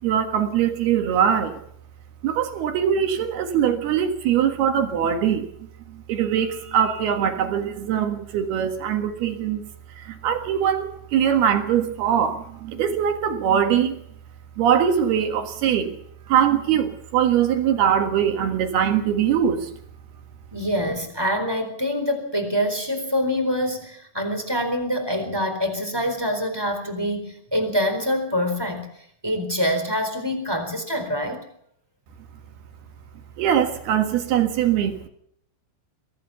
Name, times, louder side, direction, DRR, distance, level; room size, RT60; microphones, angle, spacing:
voice 1, 0.0-1.6 2.2-5.5 6.1-9.6 10.0-14.0 14.6-15.9 16.3-19.7 33.4-35.1, right 9 dB, 60° right, 6 dB, 3.1 m, -22 dB
voice 2, 20.5-28.9 29.2-31.4, equal, 5° right, 4 dB, 3.2 m, -25 dB
23.0 x 16.5 x 7.0 m, 0.68 s
omnidirectional pair, 5.9 m